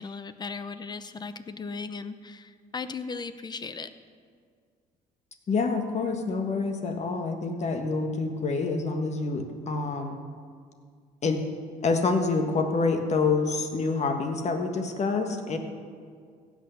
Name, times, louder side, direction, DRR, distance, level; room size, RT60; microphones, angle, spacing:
voice 1, 0.0-3.9, left 4 dB, 25° left, 12 dB, 0.7 m, -37 dB
voice 2, 5.5-10.2 11.2-11.4 11.8-15.6, left 4 dB, 40° left, 5 dB, 1.5 m, -27 dB
16.5 x 6.5 x 6.9 m, 2.1 s
cardioid pair, 110°, 17 cm